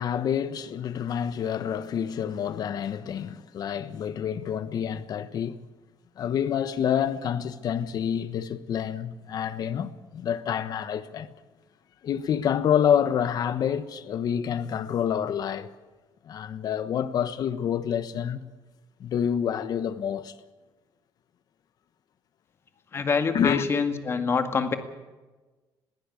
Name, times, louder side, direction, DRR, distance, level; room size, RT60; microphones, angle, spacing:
voice 1, 0.0-5.6 6.2-11.3 12.0-15.7 16.2-18.4 19.0-20.3 23.3-23.6, left 8 dB, 50° left, 1.2 m, -28 dB
voice 2, 22.9-24.8, left 5 dB, 30° left, 1.9 m, -25 dB
21.5 x 15.5 x 8.5 m
cardioid pair, 145°, 8 cm